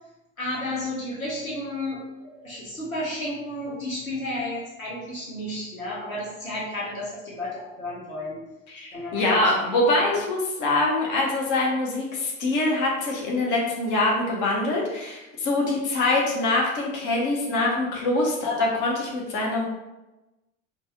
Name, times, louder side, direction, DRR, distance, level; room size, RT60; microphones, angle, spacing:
voice 1, 0.4-8.4 8.9-9.5 10.0-10.2, left 1 dB, 90° left, -5 dB, 0.8 m, -32 dB
voice 2, 8.7-19.6, left 2 dB, 45° left, -2 dB, 1.2 m, -24 dB
4.4 x 2.4 x 3.0 m, 1.0 s
figure-of-eight pair, 65°, 40 cm